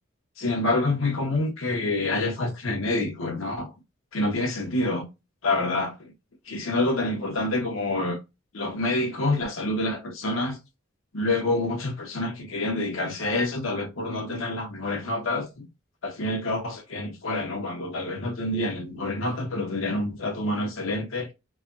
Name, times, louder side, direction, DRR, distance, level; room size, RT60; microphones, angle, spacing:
voice 1, 0.4-3.7 4.1-5.1 5.4-6.1 6.5-8.2 8.5-10.6 11.1-15.7 16.0-21.3, left 2 dB, 80° left, 0.9 m, -27 dB
3.3 x 2.2 x 2.5 m
head